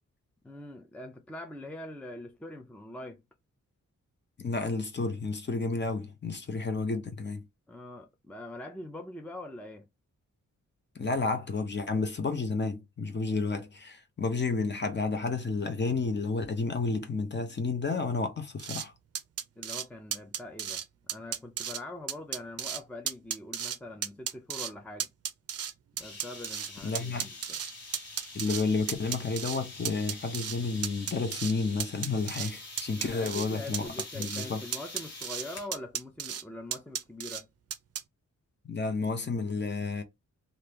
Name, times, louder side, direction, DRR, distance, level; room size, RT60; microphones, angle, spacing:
voice 1, 0.4-3.2 7.7-9.9 19.6-20.8 21.1-25.1 26.0-27.6 33.0-37.5, left 1 dB, 5° left, 0.5 m, -43 dB
voice 2, 4.4-7.5 10.9-18.9 26.8-27.3 28.3-33.9 34.2-34.6 38.6-40.0, left 3 dB, 35° left, 0.7 m, -31 dB
sound 1, 18.6-18.9 19.2-19.9 20.1-20.8 21.1-21.8 22.1-22.8 23.1-23.8 24.0-24.7 25.0-26.7 27.0-28.6 28.9-29.6 29.9-30.6 30.8-31.5 31.8-32.5 32.8-33.5 33.7-34.5 34.7-35.4 35.7-36.4 36.7-37.4 37.7-38.0, right 9 dB, 50° right, 0.5 m, -34 dB
sound 2, 26.0-35.7, left 2 dB, 55° left, 1.2 m, -46 dB
2.8 x 2.5 x 3.3 m
wide cardioid pair, 100°, 31 cm